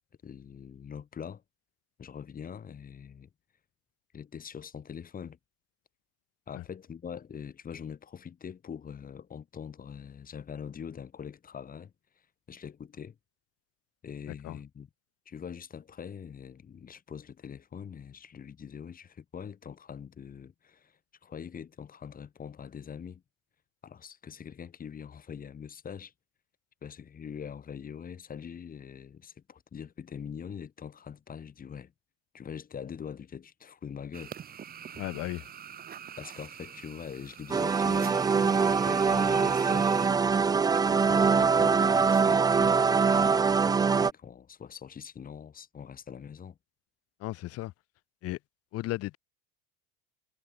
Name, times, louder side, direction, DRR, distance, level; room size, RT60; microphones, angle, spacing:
voice 1, 0.2-1.4 2.0-3.3 4.1-5.4 6.5-11.9 12.5-13.2 14.0-14.9 15.3-20.9 21.2-23.2 23.8-26.1 26.8-31.9 32.3-34.3 36.2-46.6, left 7 dB, 30° left, 6.3 m, -43 dB
sound 1, 34.1-40.1, right 8 dB, 30° right, 2.4 m, -45 dB
voice 2, 35.0-35.5 47.2-47.7 48.2-48.4 48.7-49.2, left 17 dB, 50° left, 2.0 m, -35 dB
sound 2, 37.5-44.1, right 5 dB, 15° right, 0.5 m, -23 dB
supercardioid pair, 125°, 30 cm